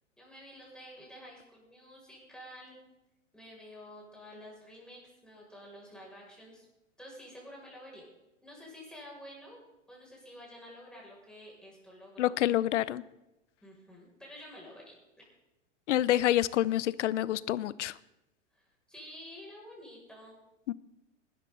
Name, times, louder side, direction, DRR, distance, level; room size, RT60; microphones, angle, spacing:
voice 1, 0.2-2.8 3.3-6.6 7.0-8.0 8.4-9.6 9.9-12.4 13.6-14.9 18.5-20.4, equal, ahead, -4 dB, 6.7 m, -50 dB
voice 2, 12.2-13.0 15.9-17.9 20.7-20.8, left 13 dB, 70° left, 20 dB, 0.7 m, -27 dB
20.0 x 12.5 x 4.1 m, 0.95 s
hypercardioid pair, 110°, 37 cm